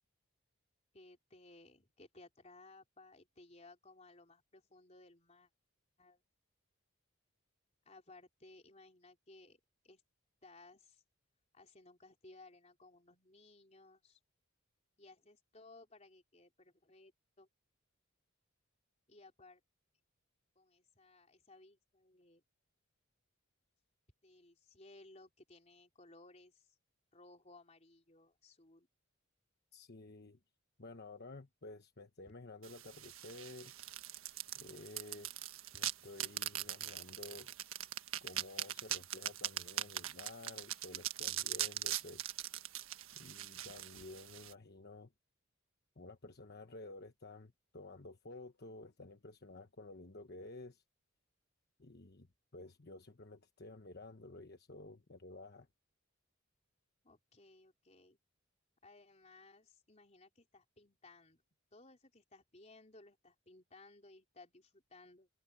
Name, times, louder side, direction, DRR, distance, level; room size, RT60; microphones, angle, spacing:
voice 1, 0.9-5.5 6.0-6.2 7.9-10.0 10.4-11.0 11.5-14.2 15.0-17.1 17.4-17.5 19.1-19.6 20.6-22.4 24.2-26.7 27.1-28.9 57.0-58.2 58.8-61.4 61.7-65.3, left 2 dB, 30° left, 4.1 m, -60 dB
voice 2, 29.7-30.4 30.8-33.7 34.5-35.3 35.7-37.5 38.2-42.2 43.1-45.1 46.0-50.8 51.8-52.3 52.5-55.7, left 2 dB, 50° left, 1.2 m, -52 dB
sound 1, 32.6-44.5, right 12 dB, 80° right, 1.5 m, -41 dB
head